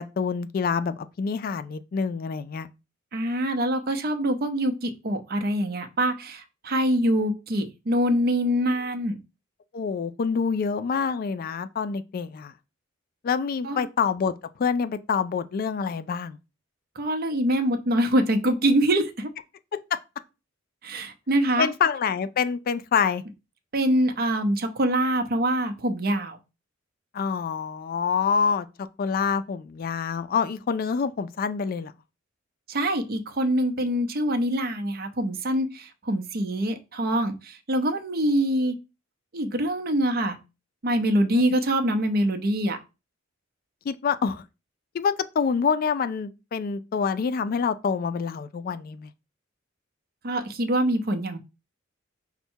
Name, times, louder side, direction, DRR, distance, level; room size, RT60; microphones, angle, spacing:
voice 1, 0.0-2.7 9.7-12.5 13.2-14.3 14.6-16.4 19.7-20.0 21.6-23.2 27.1-31.9 41.3-41.4 43.9-44.4 44.9-49.1, left 6 dB, 45° left, 0.3 m, -26 dB
voice 2, 3.1-9.2 13.6-13.9 17.0-19.3 20.8-21.7 23.7-26.4 32.7-38.8 39.3-40.4 40.8-42.8 50.2-51.4, right 1 dB, 50° right, 0.7 m, -24 dB
5.5 x 2.2 x 4.4 m
head